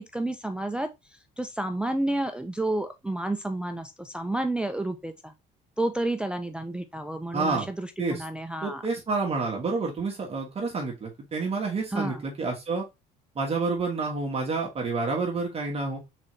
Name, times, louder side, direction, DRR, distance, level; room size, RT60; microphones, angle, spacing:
voice 1, 0.0-5.3 5.8-8.8 11.9-12.3, right 1 dB, 5° right, 0.4 m, -30 dB
voice 2, 7.3-7.7 8.0-8.2 8.6-12.8 13.3-16.0, right 4 dB, 35° right, 1.3 m, -29 dB
4.0 x 3.8 x 3.1 m
cardioid pair, 110°, 17 cm